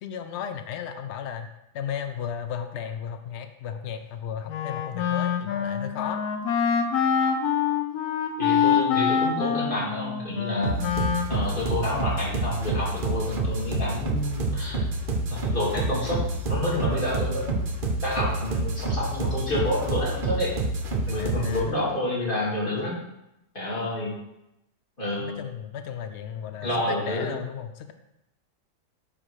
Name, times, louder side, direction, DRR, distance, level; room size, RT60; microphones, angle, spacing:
voice 1, 0.0-6.2 21.2-21.8 25.2-27.9, left 8 dB, 85° left, 7 dB, 0.6 m, -35 dB
Wind instrument woodwind instrument, 4.5-11.8, left 7 dB, 70° left, 1.1 m, -25 dB
voice 2, 8.4-10.8 11.3-14.8 15.3-16.2 16.5-17.7 18.0-20.5 21.1-23.0 23.5-24.1 25.0-25.3 26.6-27.3, left 1 dB, 30° left, -6 dB, 2.4 m, -29 dB
sound 1, 10.6-21.6, right 2 dB, 40° right, 0.8 m, -28 dB
9.9 x 3.8 x 4.9 m, 0.89 s
omnidirectional pair, 1.8 m